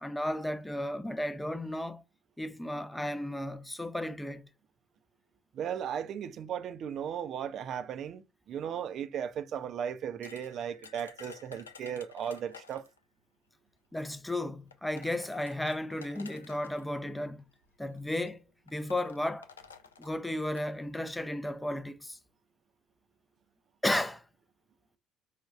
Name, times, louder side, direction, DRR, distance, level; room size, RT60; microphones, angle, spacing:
voice 1, 0.0-2.0 2.4-4.4 13.9-17.4 17.8-19.5 20.0-22.2 23.8-24.2, left 1 dB, 10° left, 0.4 m, -34 dB
voice 2, 5.5-12.9, right 8 dB, 50° right, 0.4 m, -36 dB
sound 1, 10.2-13.0 14.1-14.2 14.7-16.8 17.8-18.0 18.3-18.4 18.7-20.7, left 6 dB, 85° left, 0.3 m, -51 dB
4.9 x 2.2 x 2.3 m
figure-of-eight pair, 55°, 0 cm